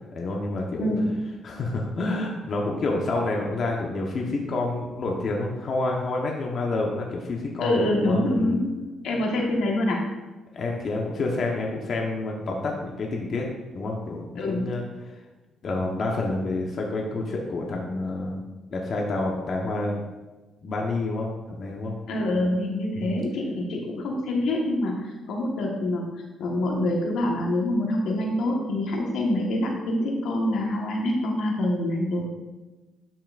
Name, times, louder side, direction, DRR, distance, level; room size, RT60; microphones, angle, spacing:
voice 1, 0.1-0.9 1.4-8.6 10.5-13.4 13.7-14.8 15.6-18.4 18.7-20.0 20.6-21.9 23.0-23.1, left 2 dB, 55° left, -1 dB, 1.1 m, -28 dB
voice 2, 0.8-1.1 7.6-8.8 9.0-10.0 14.3-14.7 22.1-26.1 26.4-32.3, left 1 dB, 75° left, 0 dB, 1.4 m, -25 dB
12.0 x 5.8 x 2.5 m, 1.2 s
cardioid pair, 90°, 0 cm